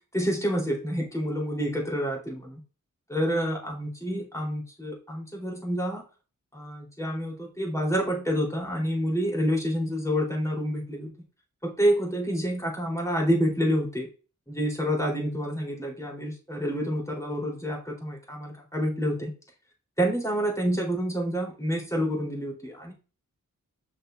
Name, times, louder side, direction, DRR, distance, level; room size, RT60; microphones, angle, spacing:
voice 1, 0.1-2.6 3.1-6.0 6.5-11.1 11.6-14.1 14.5-19.3 20.0-22.9, equal, 10° left, -1 dB, 3.7 m, -28 dB
7.0 x 6.4 x 2.6 m, 0.34 s
wide cardioid pair, 65°, 32 cm